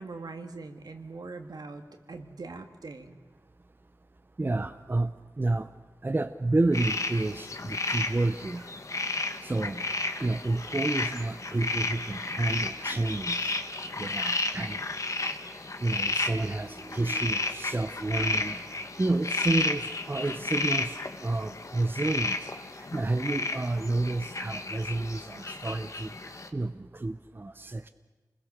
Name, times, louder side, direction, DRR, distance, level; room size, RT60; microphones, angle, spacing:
voice 1, 0.0-1.8 2.1-3.2, right 3 dB, 75° right, 6 dB, 2.0 m, -41 dB
voice 2, 4.4-5.7 6.0-8.7 9.4-9.9 10.2-13.5 14.0-14.8 15.8-18.6 19.0-22.3 22.9-26.1 26.5-27.9, right 2 dB, 30° right, 10 dB, 0.8 m, -30 dB
sound 1, 6.7-26.5, left 2 dB, 50° left, 1.6 m, -33 dB
28.5 x 21.0 x 6.6 m, 1.2 s
wide cardioid pair, 90°, 7 cm